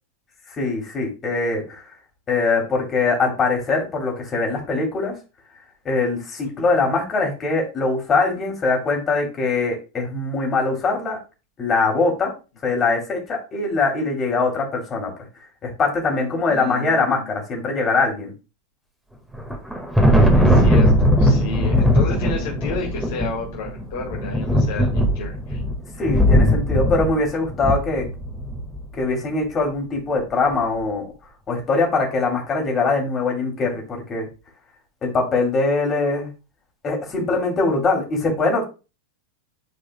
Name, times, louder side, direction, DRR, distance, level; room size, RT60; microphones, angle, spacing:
voice 1, 0.6-1.8 2.3-5.1 5.8-11.2 11.6-12.3 12.6-15.1 15.6-18.3 26.0-28.1 28.9-31.1 31.5-34.3 35.0-36.3 36.8-38.6, left 3 dB, 25° left, 0 dB, 2.7 m, -22 dB
voice 2, 16.5-17.1 20.3-25.6, left 4 dB, 50° left, -1 dB, 1.9 m, -32 dB
Thunder, 19.3-28.8, equal, ahead, 1.7 m, -19 dB
10.5 x 4.8 x 2.2 m, 0.31 s
figure-of-eight pair, 90°, 0 cm